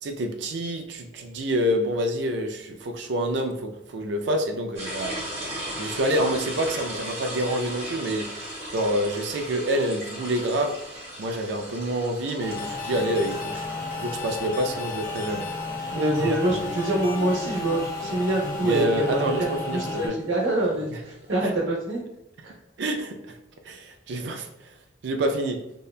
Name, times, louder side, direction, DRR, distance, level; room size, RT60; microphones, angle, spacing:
voice 1, 0.0-5.2 5.8-8.3 8.7-10.7 11.2-13.6 14.0-15.5 15.8-15.9 16.2-16.6 18.6-20.2 20.9-21.0 21.4-21.6 22.8-23.4 23.6-24.5 25.0-25.6, right 1 dB, 65° right, 5 dB, 0.4 m, -27 dB
sound 1, 4.8-19.1, right 1 dB, 35° right, 0.8 m, -38 dB
sound 2, 12.4-20.1, left 3 dB, 25° left, 0.9 m, -34 dB
sound 3, 12.6-18.9, left 4 dB, 45° left, 0.3 m, -41 dB
voice 2, 15.9-22.0 22.4-22.5, right 1 dB, 85° right, -1 dB, 0.8 m, -25 dB
2.7 x 2.2 x 2.3 m, 0.88 s
head